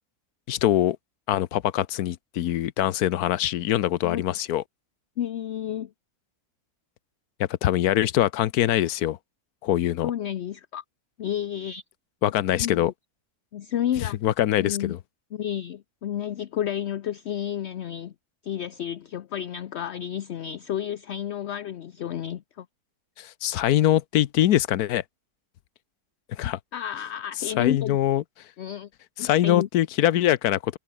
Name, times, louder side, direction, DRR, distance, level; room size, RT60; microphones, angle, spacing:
voice 1, 0.5-1.0 1.3-4.6 7.4-9.2 9.6-10.1 12.2-12.9 14.2-15.0 23.2-25.0 26.3-26.6 27.4-28.2 29.2-30.8, left 12 dB, 85° left, 1.3 m, -23 dB
voice 2, 5.2-5.9 10.0-10.8 11.2-11.8 12.5-12.9 13.5-14.2 14.6-14.9 15.3-18.1 18.4-22.7 26.7-28.0 28.6-28.9 29.2-29.7, left 10 dB, 55° left, 0.8 m, -31 dB
omnidirectional pair, 1.6 m